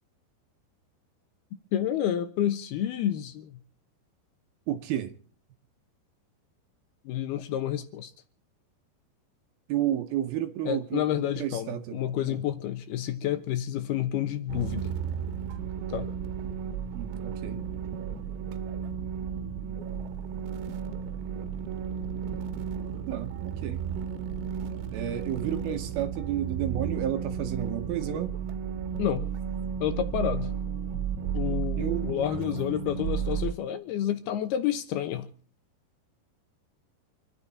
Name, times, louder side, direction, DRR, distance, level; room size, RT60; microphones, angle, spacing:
voice 1, 1.7-3.5 7.1-8.1 10.7-14.9 15.9-16.1 29.0-29.2 29.8-30.5 31.3-35.3, left 11 dB, 75° left, 2.8 m, -29 dB
voice 2, 4.7-5.2 9.7-12.0 12.2-12.4 16.9-17.7 19.5-19.8 23.1-23.8 24.9-28.3 31.8-32.3, right 11 dB, 70° right, 2.6 m, -32 dB
sound 1, 14.5-33.5, right 7 dB, 90° right, 3.3 m, -33 dB
27.0 x 10.0 x 4.2 m
omnidirectional pair, 5.0 m